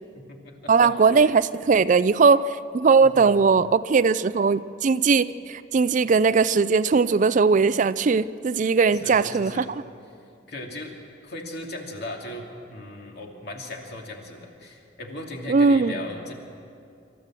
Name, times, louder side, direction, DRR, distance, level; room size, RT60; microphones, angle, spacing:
voice 1, 0.1-1.3 3.0-3.4 9.0-9.7 10.5-10.9 11.2-16.3, left 1 dB, 55° left, 1 dB, 2.7 m, -38 dB
voice 2, 0.7-2.4 2.7-9.8 15.5-16.0, right 5 dB, 40° right, 16 dB, 0.4 m, -19 dB
26.0 x 14.0 x 7.6 m, 2.5 s
head